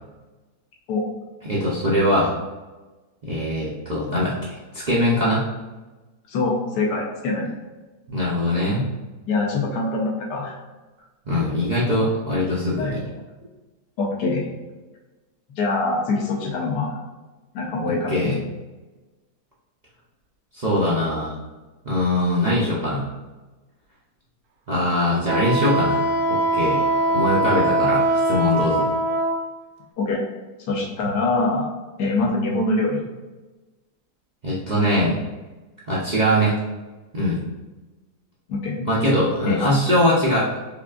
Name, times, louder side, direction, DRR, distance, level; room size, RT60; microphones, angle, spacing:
voice 1, 1.4-2.3 3.2-5.4 8.1-8.9 11.3-13.0 18.1-18.4 20.5-21.3 21.9-23.0 24.7-26.0 26.3-26.8 27.1-28.9 34.4-35.1 35.9-36.5 37.1-37.4 38.9-40.5, left 1 dB, 65° right, -8 dB, 0.4 m, -22 dB
voice 2, 6.3-7.5 9.2-10.5 12.4-13.0 14.0-14.4 15.6-17.0 17.5-18.4 30.0-30.2 30.7-31.7 32.0-33.1 38.5-38.9 39.4-39.8, left 3 dB, 85° left, -1 dB, 1.4 m, -24 dB
Wind instrument woodwind instrument, 25.3-29.4, right 2 dB, 85° right, 1.3 m, -21 dB
5.2 x 2.4 x 2.3 m, 1.2 s
omnidirectional pair, 1.7 m